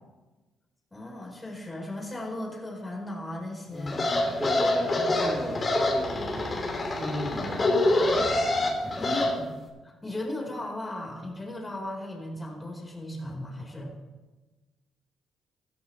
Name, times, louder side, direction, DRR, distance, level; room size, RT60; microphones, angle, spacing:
voice 1, 0.9-4.0 9.0-9.5 9.8-13.9, left 1 dB, 20° left, 0 dB, 4.5 m, -36 dB
voice 2, 3.7-6.5 7.0-8.3 8.8-9.1, equal, 5° right, -2 dB, 3.8 m, -36 dB
sound 1, 3.9-9.3, left 2 dB, 35° left, 3.6 m, -26 dB
15.0 x 14.0 x 3.3 m, 1.2 s
cardioid pair, 90°, 0 cm